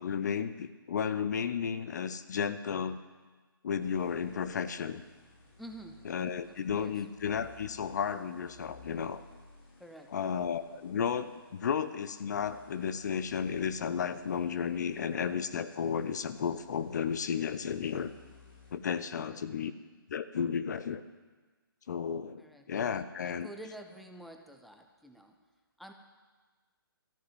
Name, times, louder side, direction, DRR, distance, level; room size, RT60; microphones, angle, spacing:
voice 1, 0.0-3.0 3.6-5.0 6.0-9.2 10.1-18.1 18.7-19.7 20.1-21.0 21.9-22.4 22.7-23.5, left 7 dB, 50° left, 13 dB, 0.6 m, -33 dB
sound 1, 3.8-18.7, left 3 dB, 30° left, 3.3 m, -58 dB
voice 2, 5.6-6.0 6.5-7.0 9.8-10.1 19.1-19.4 22.4-22.7 23.2-25.3 25.8-25.9, right 1 dB, ahead, 4 dB, 0.7 m, -49 dB
13.5 x 6.6 x 9.5 m, 1.3 s
figure-of-eight pair, 135°, 12 cm